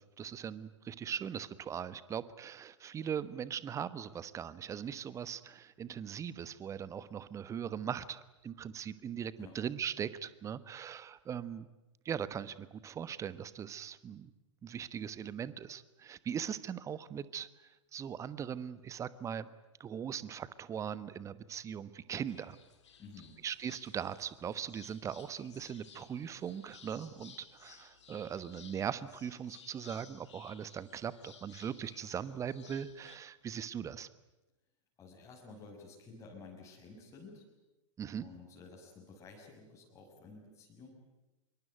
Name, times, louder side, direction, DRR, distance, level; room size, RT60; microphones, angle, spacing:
voice 1, 0.0-11.7 12.0-14.3 14.6-17.5 17.9-19.5 19.8-22.6 23.4-34.1 38.0-38.3, right 8 dB, 20° right, 16 dB, 1.2 m, -40 dB
sound 1, 22.3-33.2, left 7 dB, 65° left, 3.4 m, -58 dB
voice 2, 23.0-23.3 35.0-37.4 38.2-40.9, left 4 dB, 20° left, -2 dB, 6.5 m, -52 dB
26.0 x 23.5 x 9.3 m, 1.0 s
figure-of-eight pair, 105°, 16 cm